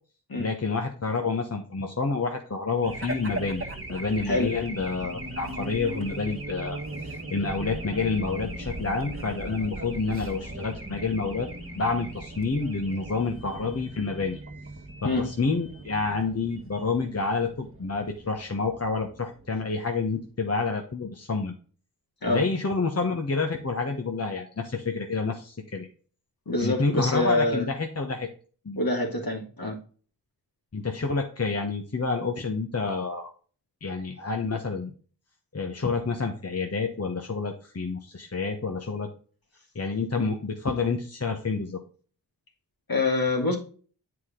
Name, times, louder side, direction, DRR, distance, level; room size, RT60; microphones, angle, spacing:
voice 1, 0.4-11.5 11.8-14.4 15.0-21.5 22.3-25.9 26.6-28.3 28.6-28.8 30.7-33.3 33.8-34.9 35.5-39.1 39.7-41.8, left 4 dB, 35° left, 3 dB, 1.1 m, -28 dB
Race car auto racing / Alarm, 2.8-19.8, right 2 dB, 30° right, 1.7 m, -38 dB
voice 2, 26.5-27.6 28.8-29.8 42.9-43.6, left 2 dB, 55° left, 1 dB, 2.4 m, -25 dB
8.1 x 4.9 x 3.8 m, 0.41 s
cardioid pair, 40°, 41 cm